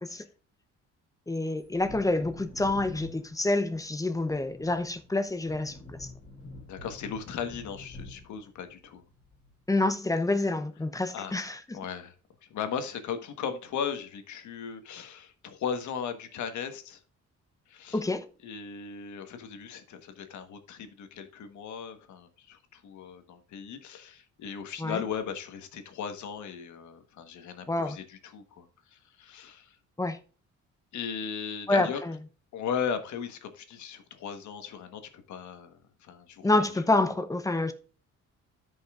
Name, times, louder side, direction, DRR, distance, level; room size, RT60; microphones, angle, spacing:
voice 1, 1.3-6.1 9.7-11.8 17.9-18.2 24.8-25.0 27.7-28.0 30.0-30.2 31.7-32.2 36.4-37.7, left 2 dB, 10° left, 0.8 m, -28 dB
Wind / Thunder, 1.6-9.9 10.2-10.3, left 2 dB, 25° left, 2.9 m, -48 dB
voice 2, 6.6-9.0 11.1-11.4 11.7-12.1 12.5-17.0 17.7-18.0 18.4-29.8 30.9-32.0 32.5-36.5 36.9-37.0, left 7 dB, 75° left, 1.4 m, -37 dB
13.5 x 5.5 x 2.5 m
cardioid pair, 135°, 30 cm